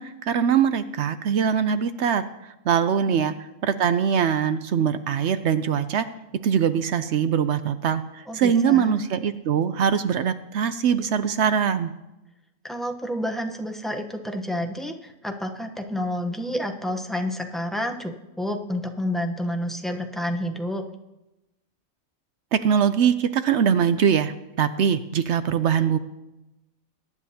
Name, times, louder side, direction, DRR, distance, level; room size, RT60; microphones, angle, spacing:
voice 1, 0.0-2.2 2.7-3.3 3.6-6.1 6.4-11.9 22.5-26.0, right 7 dB, 65° right, 11 dB, 0.8 m, -22 dB
voice 2, 8.3-9.0 12.6-20.8, left 1 dB, ahead, 3 dB, 0.6 m, -29 dB
22.0 x 9.7 x 2.8 m, 0.98 s
omnidirectional pair, 1.4 m